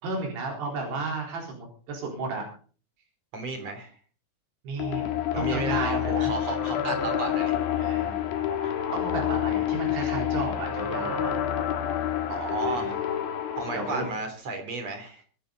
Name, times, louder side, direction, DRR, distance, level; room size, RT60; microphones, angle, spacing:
voice 1, 0.0-2.4 4.6-5.1 5.4-6.3 7.8-8.3 8.6-11.3 12.7-12.9 13.7-14.1, right 3 dB, 75° right, 0 dB, 6.3 m, -33 dB
voice 2, 3.3-4.0 5.3-7.6 12.3-13.0 13.6-15.2, right 3 dB, 40° right, 6 dB, 4.0 m, -33 dB
sound 1, 4.8-14.1, left 10 dB, 65° left, 3.3 m, -28 dB
24.5 x 10.0 x 4.0 m, 0.40 s
omnidirectional pair, 4.8 m